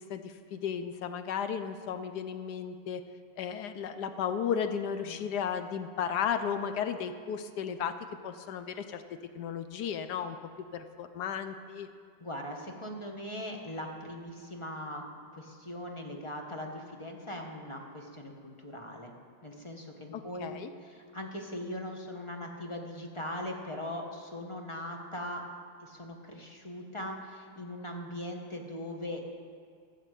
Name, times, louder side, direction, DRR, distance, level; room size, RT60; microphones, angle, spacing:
voice 1, 0.0-3.0 3.4-8.0 8.2-11.9 20.1-20.7, left 7 dB, 70° left, 9 dB, 0.9 m, -34 dB
voice 2, 12.2-15.0 15.3-19.1 19.4-20.6 20.8-25.4 25.8-29.2, left 1 dB, 20° left, 1 dB, 0.8 m, -40 dB
14.5 x 6.8 x 8.1 m, 2.2 s
omnidirectional pair, 2.4 m